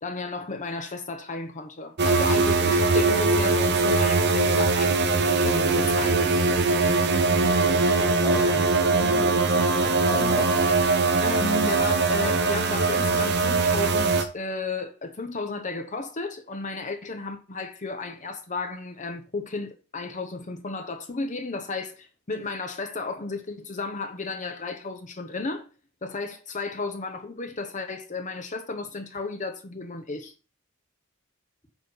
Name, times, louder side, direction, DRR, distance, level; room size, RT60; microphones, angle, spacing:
voice 1, 0.0-6.5 11.2-25.7 26.0-30.3, left 3 dB, 35° left, 0.8 m, -33 dB
sound 1, 2.0-14.2, right 3 dB, 50° right, 1.0 m, -21 dB
voice 2, 7.4-9.4 9.8-10.6, left 1 dB, 20° left, 1.5 m, -35 dB
8.9 x 4.4 x 5.5 m
head